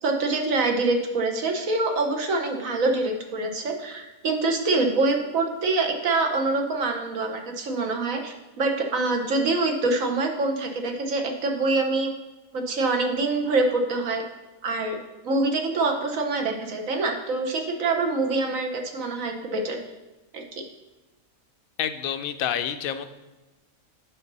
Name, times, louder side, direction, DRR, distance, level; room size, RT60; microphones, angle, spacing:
voice 1, 0.0-12.1 12.5-14.2 14.6-15.0 15.2-19.8 20.3-20.6, right 3 dB, 75° right, 3 dB, 1.5 m, -25 dB
voice 2, 21.8-23.1, left 9 dB, 85° left, 10 dB, 1.0 m, -28 dB
9.2 x 5.6 x 4.0 m, 1.1 s
omnidirectional pair, 1.4 m